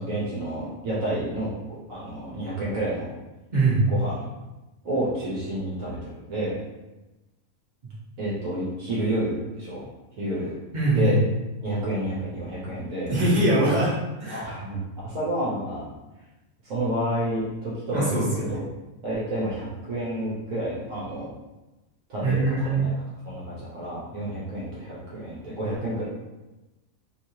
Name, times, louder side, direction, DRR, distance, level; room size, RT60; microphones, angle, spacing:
voice 1, 0.0-1.5 1.9-3.1 3.9-4.2 4.8-6.6 8.2-9.8 10.2-10.6 10.9-11.2 11.6-13.1 14.3-15.8 16.6-18.7 19.0-21.3 22.1-22.9 23.2-26.0, right 1 dB, 75° right, -7 dB, 1.2 m, -29 dB
voice 2, 3.5-3.9 10.7-11.2 13.1-14.4 17.9-18.6 22.2-22.8, right 2 dB, 35° right, -7 dB, 1.0 m, -22 dB
3.1 x 2.7 x 2.7 m, 1.1 s
omnidirectional pair, 1.5 m